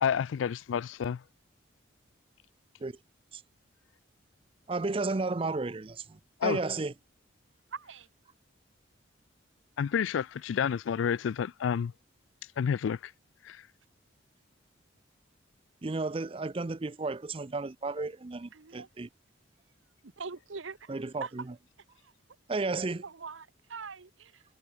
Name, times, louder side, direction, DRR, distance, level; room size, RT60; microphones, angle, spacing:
voice 1, 0.0-1.2 6.4-6.6 9.8-11.9 12.6-13.1 13.4-13.6, left 7 dB, 80° left, 0.3 m, -29 dB
voice 2, 4.7-6.9 15.8-19.1 20.9-21.4 22.5-23.0, right 3 dB, 30° right, 0.5 m, -33 dB
voice 3, 7.7-8.1 18.5-18.9 20.0-20.9 21.2-21.3 22.0-22.1 23.0-24.4, right 5 dB, 85° right, 1.0 m, -42 dB
head